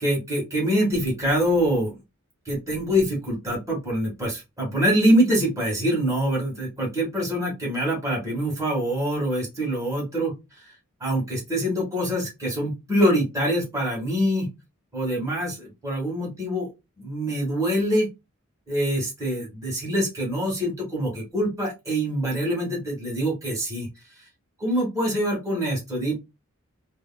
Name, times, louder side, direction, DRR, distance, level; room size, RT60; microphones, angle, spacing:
voice 1, 0.0-2.0 2.4-10.3 11.0-14.5 14.9-16.7 17.0-18.1 18.7-23.9 24.6-26.1, equal, 15° right, -3 dB, 1.7 m, -24 dB
3.2 x 2.9 x 2.2 m, 0.23 s
head